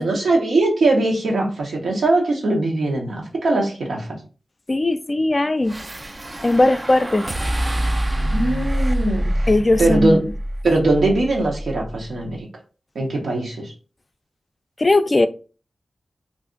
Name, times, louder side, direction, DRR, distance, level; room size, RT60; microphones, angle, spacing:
voice 1, 0.0-4.1 8.3-9.5 9.8-10.2 10.6-12.5 12.9-13.7, right 2 dB, 85° right, 0.9 m, -20 dB
voice 2, 4.7-5.8 6.4-7.3 9.5-10.2 14.8-15.3, left 2 dB, 40° left, 0.3 m, -18 dB
sound 1, 5.7-12.0, right 1 dB, 35° right, 0.4 m, -25 dB
2.5 x 2.4 x 3.7 m
cardioid pair, 40°, 0 cm